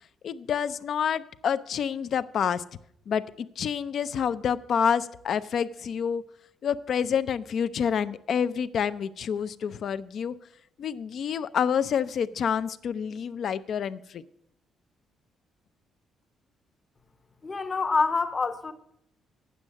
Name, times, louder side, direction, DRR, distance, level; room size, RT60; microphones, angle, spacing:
voice 1, 0.2-2.6 3.1-6.2 6.6-10.4 10.8-14.2, left 7 dB, 60° left, 0.5 m, -28 dB
voice 2, 17.4-18.7, left 4 dB, 30° left, 0.8 m, -26 dB
9.1 x 6.3 x 7.6 m
cardioid pair, 90°, 0 cm